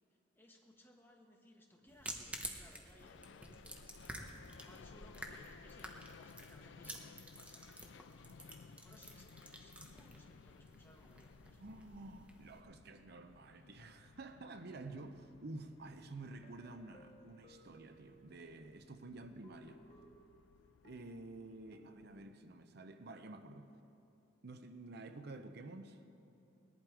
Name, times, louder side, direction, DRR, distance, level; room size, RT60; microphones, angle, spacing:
voice 1, 0.3-7.7 8.7-11.6, left 1 dB, 10° left, 0 dB, 1.5 m, -64 dB
sound 1, 1.9-12.6, right 1 dB, 5° right, 1.2 m, -51 dB
sound 2, 3.0-22.3, left 5 dB, 70° left, 0.4 m, -60 dB
voice 2, 11.6-19.8 20.8-23.7 24.4-26.0, right 2 dB, 60° right, 8 dB, 0.7 m, -50 dB
sound 3, 16.4-18.6 19.4-22.6, right 1 dB, 40° left, 1.2 m, -64 dB
19.5 x 11.0 x 4.8 m, 2.9 s
head